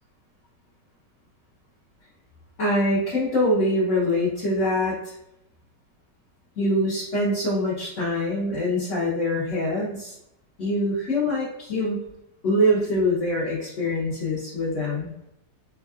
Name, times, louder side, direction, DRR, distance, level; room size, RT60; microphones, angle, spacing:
voice 1, 2.6-5.1 6.6-10.1 10.6-12.1 12.4-15.1, left 1 dB, 50° left, -8 dB, 1.0 m, -24 dB
3.5 x 2.3 x 2.3 m, 0.81 s
omnidirectional pair, 2.0 m